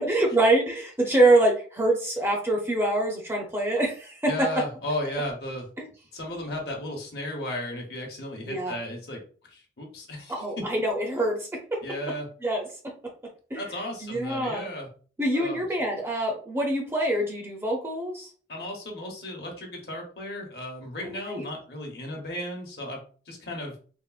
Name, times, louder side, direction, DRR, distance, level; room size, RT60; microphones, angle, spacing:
voice 1, 0.0-4.5 5.8-5.9 8.5-8.7 10.3-11.8 12.4-12.7 13.5-13.6 14.0-14.7 15.2-18.3 21.0-21.5, right 1 dB, 15° right, 0 dB, 0.5 m, -25 dB
voice 2, 4.3-5.7 6.1-9.2 9.5-10.3 11.8-12.3 13.5-14.9 15.3-15.7 18.5-23.0 23.3-23.7, left 1 dB, 60° left, 0 dB, 0.9 m, -34 dB
3.4 x 2.0 x 2.3 m, 0.40 s
head